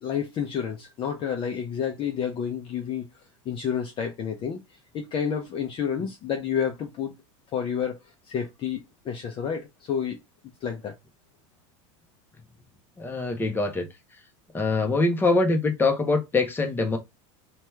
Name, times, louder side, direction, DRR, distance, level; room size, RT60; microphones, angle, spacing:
voice 1, 0.0-3.1 3.5-4.6 4.9-7.1 7.5-8.0 8.3-10.2 10.6-10.9, left 7 dB, 35° left, 0.5 m, -29 dB
voice 2, 13.0-13.9 14.5-17.0, left 3 dB, 15° left, 0.8 m, -23 dB
2.8 x 2.3 x 3.2 m
supercardioid pair, 120°, 16 cm